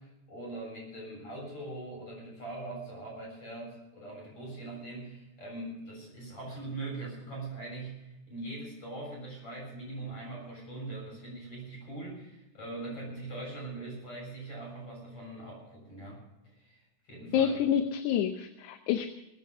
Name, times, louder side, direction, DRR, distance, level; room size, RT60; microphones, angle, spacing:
voice 1, 0.0-16.2 16.6-17.6, right 2 dB, 45° left, -2 dB, 8.4 m, -42 dB
voice 2, 17.3-19.1, left 9 dB, 80° left, 8 dB, 2.2 m, -28 dB
20.5 x 9.3 x 6.5 m, 0.97 s
omnidirectional pair, 3.6 m